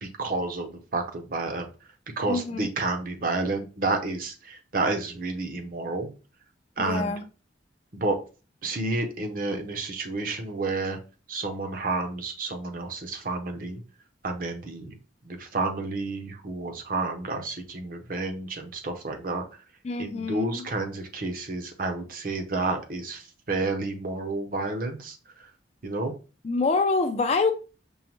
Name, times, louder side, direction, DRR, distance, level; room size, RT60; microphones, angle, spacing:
voice 1, 0.0-1.7 2.2-6.1 6.8-7.1 7.9-8.2 8.6-11.0 11.3-13.8 14.2-14.9 15.2-19.4 20.0-25.2 25.8-26.1, right 3 dB, 50° right, 0.6 m, -30 dB
voice 2, 2.3-2.7 6.8-7.2 19.8-20.7 26.4-27.5, left 4 dB, 35° left, 0.3 m, -26 dB
5.4 x 2.1 x 3.0 m
head